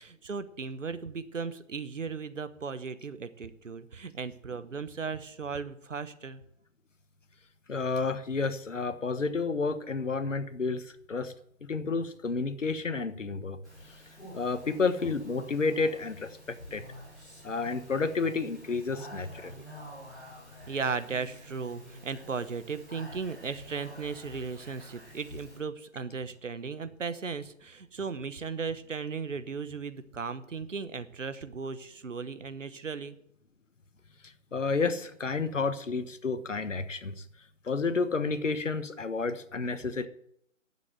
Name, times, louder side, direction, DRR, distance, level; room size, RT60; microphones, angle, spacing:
voice 1, 0.0-6.4 20.7-33.2, right 5 dB, 70° right, 13 dB, 1.1 m, -36 dB
voice 2, 7.7-11.3 11.6-13.6 14.3-16.8 17.4-19.6 34.5-37.2 37.6-40.1, left 4 dB, 70° left, 11 dB, 1.4 m, -30 dB
Speech, 13.6-25.6, equal, ahead, 0.8 m, -49 dB
11.0 x 7.6 x 7.6 m, 0.70 s
figure-of-eight pair, 155°, 39 cm